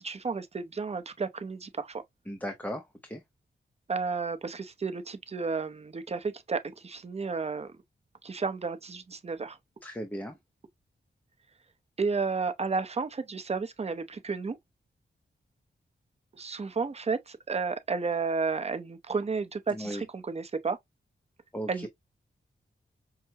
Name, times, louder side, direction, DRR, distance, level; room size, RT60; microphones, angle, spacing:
voice 1, 0.0-2.0 3.9-7.7 8.2-9.6 12.0-14.6 16.3-20.8 21.7-21.9, right 4 dB, 35° right, 0.7 m, -32 dB
voice 2, 2.3-3.2 9.8-10.4 19.7-20.0 21.5-21.9, equal, 10° left, 0.8 m, -36 dB
5.7 x 2.2 x 2.8 m
wide cardioid pair, 90°, 19 cm